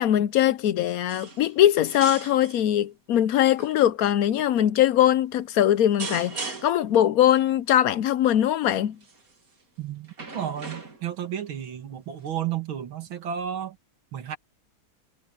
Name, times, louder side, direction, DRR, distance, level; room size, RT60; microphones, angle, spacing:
voice 1, 0.0-9.0, left 11 dB, 90° left, 0.7 m, -21 dB
sound 1, 1.1-1.6 1.8-2.7 3.4-3.7 4.6-4.8 6.0-6.9 9.0-9.3 10.1-11.2 12.3-12.4, right 4 dB, 40° right, 2.9 m, -38 dB
voice 2, 9.8-13.8 14.1-14.4, right 9 dB, 75° right, 2.5 m, -32 dB
omnidirectional pair, 2.2 m